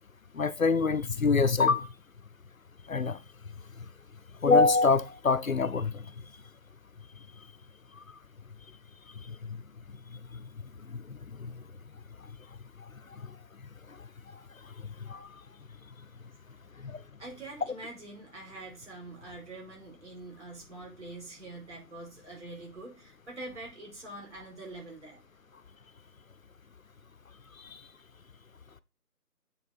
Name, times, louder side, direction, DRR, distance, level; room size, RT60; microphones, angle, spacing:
voice 1, 0.3-1.9 2.9-3.2 4.4-6.0 10.9-11.5 13.2-13.3 15.0-15.3 16.8-17.0 27.7-27.8, left 4 dB, 60° left, 0.6 m, -25 dB
voice 2, 17.2-25.2, right 2 dB, 45° right, 4.9 m, -45 dB
8.8 x 3.9 x 4.1 m
figure-of-eight pair, 165°, 47 cm